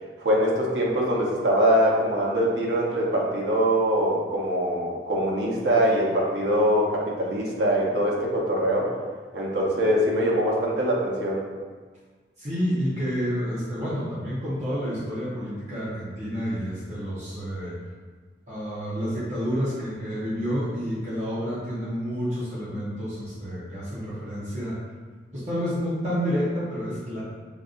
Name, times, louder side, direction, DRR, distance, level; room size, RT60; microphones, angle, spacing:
voice 1, 0.2-8.9 9.3-11.4, equal, 80° right, -4 dB, 0.8 m, -23 dB
voice 2, 12.4-17.7 18.5-24.8 25.3-27.2, equal, 40° right, -10 dB, 0.8 m, -29 dB
5.2 x 2.6 x 2.5 m, 1.5 s
head